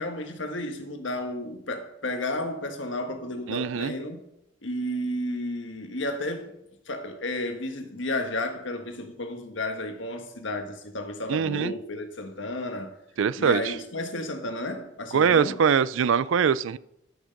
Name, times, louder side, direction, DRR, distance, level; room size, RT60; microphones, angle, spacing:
voice 1, 0.0-4.2 4.6-6.5 6.9-12.9 13.4-15.5, left 1 dB, 70° left, 1.4 m, -32 dB
voice 2, 3.5-3.9 11.3-11.7 13.2-13.7 15.1-16.8, right 7 dB, 80° right, 0.4 m, -23 dB
12.5 x 6.3 x 5.2 m
head